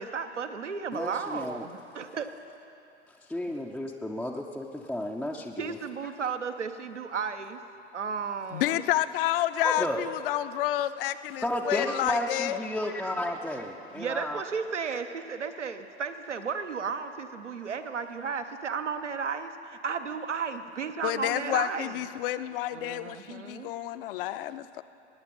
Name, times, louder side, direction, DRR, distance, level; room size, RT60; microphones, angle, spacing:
voice 1, 0.0-2.3 5.6-7.6 7.9-8.8 13.9-22.0 22.7-23.7, right 6 dB, 85° right, 8 dB, 0.8 m, -34 dB
voice 2, 0.9-1.7 3.1-5.8 9.6-10.1 11.4-14.4, left 1 dB, ahead, -1 dB, 0.4 m, -32 dB
voice 3, 8.5-12.6 21.0-24.8, left 14 dB, 50° left, 13 dB, 0.6 m, -29 dB
18.0 x 9.4 x 5.4 m, 2.7 s
figure-of-eight pair, 95°, 35 cm